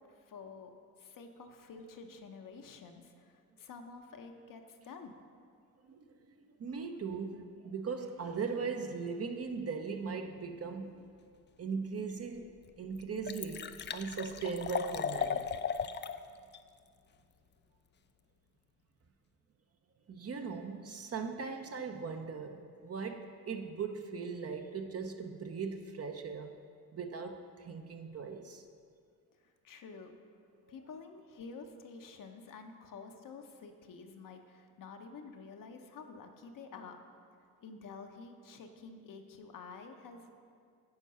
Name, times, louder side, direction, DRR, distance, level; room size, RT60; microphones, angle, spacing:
voice 1, 0.1-0.7 1.0-5.2 29.4-30.2 30.7-37.0 37.6-40.3, left 4 dB, 55° left, 5 dB, 0.9 m, -49 dB
voice 2, 5.8-11.0 11.6-15.5 20.1-26.6 26.9-28.6, right 5 dB, 40° right, 5 dB, 0.8 m, -39 dB
Liquid, 12.1-12.2 12.6-12.7 12.9-16.2 16.5-16.6, left 7 dB, 30° left, 0.4 m, -36 dB
9.6 x 4.5 x 5.5 m, 2.2 s
supercardioid pair, 60°, 38 cm